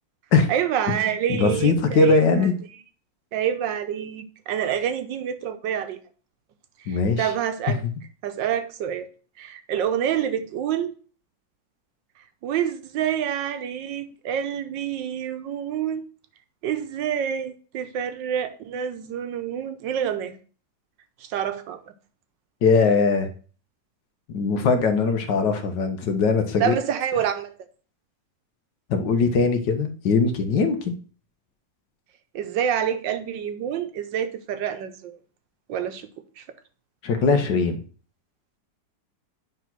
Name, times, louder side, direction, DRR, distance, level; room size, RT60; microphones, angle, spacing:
voice 1, 0.5-2.5 3.3-6.0 6.8-7.8 8.2-9.1 9.4-10.9 12.4-16.1 16.6-20.4 21.2-21.8 26.6-27.5 32.3-35.2 35.7-36.1 36.4-36.5, right 9 dB, 90° right, 1.5 m, -27 dB
voice 2, 1.3-2.5 6.9-7.3 7.8-7.9 22.6-23.3 24.3-26.8 28.9-30.9 37.0-37.8, left 4 dB, 75° left, 1.6 m, -21 dB
9.2 x 3.5 x 6.0 m
omnidirectional pair, 1.9 m